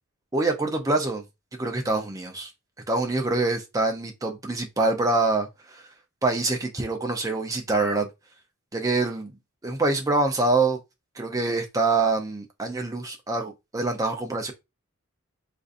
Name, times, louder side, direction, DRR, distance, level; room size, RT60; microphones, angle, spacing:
voice 1, 0.3-1.2 1.6-2.5 2.9-5.8 6.2-8.1 8.7-9.3 9.6-10.8 11.2-14.5, right 3 dB, 15° right, 0.5 m, -25 dB
3.7 x 2.5 x 2.5 m
head